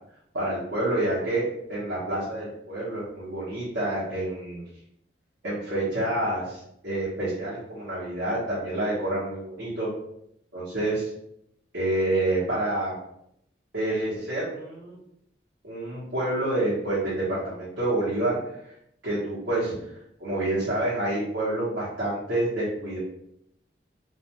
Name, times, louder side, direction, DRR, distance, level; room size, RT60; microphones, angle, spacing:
voice 1, 0.3-1.4 1.7-4.6 5.4-9.9 10.5-11.1 11.7-12.9 13.7-15.0 15.6-18.4 19.0-19.7 20.2-23.0, right 1 dB, 85° right, -9 dB, 0.9 m, -28 dB
2.4 x 2.2 x 2.8 m, 0.76 s
head